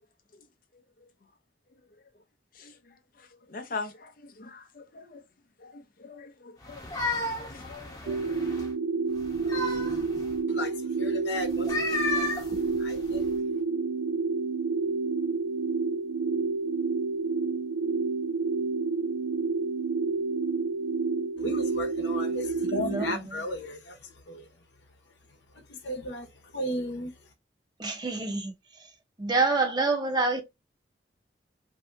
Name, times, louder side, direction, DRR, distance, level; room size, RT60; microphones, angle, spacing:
voice 1, 2.5-5.2 5.6-8.6, left 4 dB, 50° left, 0.6 m, -43 dB
sound 1, 6.6-8.7 9.2-10.4 11.5-13.3, left 2 dB, 20° left, 0.8 m, -33 dB
sound 2, 8.1-23.2, right 4 dB, 80° right, 0.3 m, -29 dB
voice 2, 10.5-12.4 12.8-13.3 21.4-24.5 25.6-26.3 26.5-27.1, left 1 dB, 80° left, 0.9 m, -35 dB
voice 3, 22.8-23.4 27.8-28.9 29.2-30.4, right 3 dB, 25° right, 0.7 m, -27 dB
3.3 x 2.7 x 2.5 m
head